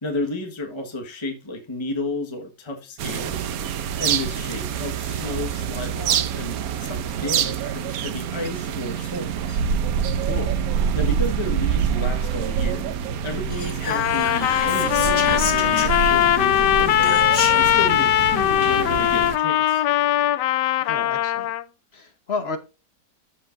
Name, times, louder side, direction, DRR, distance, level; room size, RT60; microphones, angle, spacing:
voice 1, 0.0-3.5 4.0-9.6 10.9-12.9 13.2-17.2 17.5-19.8, left 2 dB, 20° left, 1.4 m, -32 dB
sound 1, 3.0-19.4, right 8 dB, 65° right, 1.1 m, -26 dB
voice 2, 10.2-10.6 20.8-21.5 21.9-22.6, left 4 dB, 40° left, 1.3 m, -31 dB
Whispering, 13.5-16.5 17.0-17.8, left 4 dB, 65° left, 2.3 m, -31 dB
Trumpet, 13.9-21.6, left 13 dB, 85° left, 1.2 m, -20 dB
14.5 x 5.1 x 2.6 m
omnidirectional pair, 1.8 m